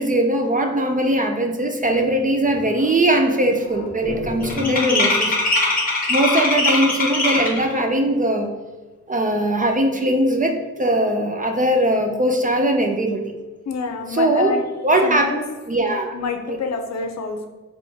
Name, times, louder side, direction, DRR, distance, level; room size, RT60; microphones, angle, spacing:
voice 1, 0.0-5.3 6.1-8.5 9.1-13.3 14.1-14.5 14.8-15.3 15.7-16.1 16.5-16.6, right 1 dB, 30° right, 4 dB, 0.3 m, -20 dB
sound 1, 2.0-2.1 2.4-2.8 3.1-7.7, left 2 dB, 30° left, 0.9 m, -22 dB
voice 2, 4.6-5.3 13.7-14.7 15.0-15.4 16.1-17.5, left 4 dB, 60° left, 5 dB, 0.6 m, -27 dB
3.9 x 3.0 x 3.4 m, 1.3 s
wide cardioid pair, 170°, 30 cm